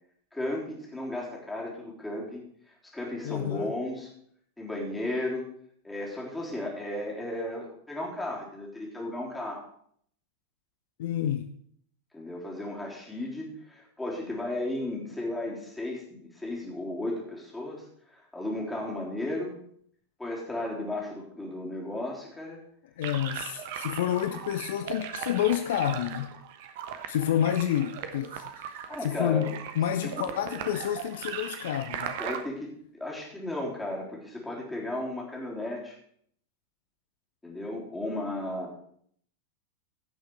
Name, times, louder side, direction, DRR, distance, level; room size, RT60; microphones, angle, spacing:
voice 1, 0.3-2.4 2.9-4.1 4.6-5.5 5.8-9.7 12.1-17.9 18.1-19.6 20.2-22.6 28.9-29.5 30.0-30.1 32.2-36.0 37.4-38.7, left 1 dB, 5° left, -3 dB, 3.6 m, -34 dB
voice 2, 3.2-3.7 11.0-11.5 23.0-26.3 27.1-32.2, left 10 dB, 55° left, 10 dB, 0.6 m, -29 dB
sound 1, 23.0-32.4, right 8 dB, 50° right, 1.1 m, -38 dB
16.0 x 6.4 x 4.7 m, 0.64 s
figure-of-eight pair, 90°, 0 cm